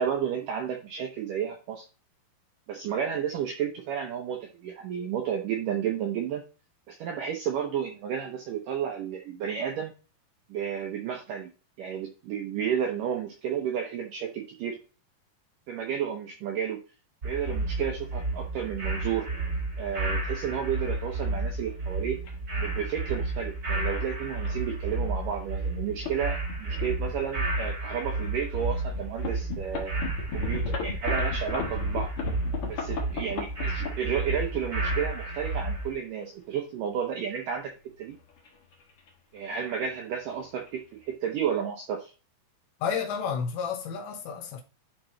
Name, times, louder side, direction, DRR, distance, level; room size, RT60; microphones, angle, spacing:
voice 1, 0.0-1.9 2.7-6.4 6.9-9.9 10.5-11.5 11.8-14.8 15.7-16.8 17.2-19.3 19.8-22.2 22.6-29.9 30.3-32.1 32.7-37.7 38.0-38.2 39.3-42.1, right 8 dB, 80° right, 1.9 m, -32 dB
sound 1, 17.2-35.9, right 2 dB, 60° right, 0.8 m, -31 dB
sound 2, 22.2-22.3 23.2-23.4 24.0-24.1 24.4-24.6 25.3-25.4 25.7-26.2 26.5-27.7 28.2-28.3 28.9-34.5 35.3-36.2 37.9-39.1 39.4-39.6 39.9-40.0 40.3-40.7, left 5 dB, 60° left, 1.4 m, -36 dB
voice 2, 42.8-44.6, left 6 dB, 85° left, 3.2 m, -31 dB
11.0 x 3.8 x 3.2 m
omnidirectional pair, 5.0 m